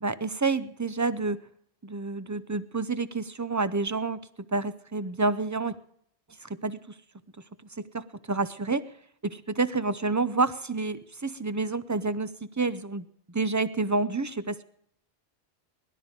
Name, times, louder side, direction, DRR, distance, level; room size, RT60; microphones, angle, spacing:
voice 1, 0.0-1.4 1.8-5.8 6.4-6.9 7.7-8.8 9.2-14.6, right 3 dB, 25° right, 14 dB, 0.5 m, -29 dB
18.5 x 12.5 x 5.2 m, 0.69 s
omnidirectional pair, 1.0 m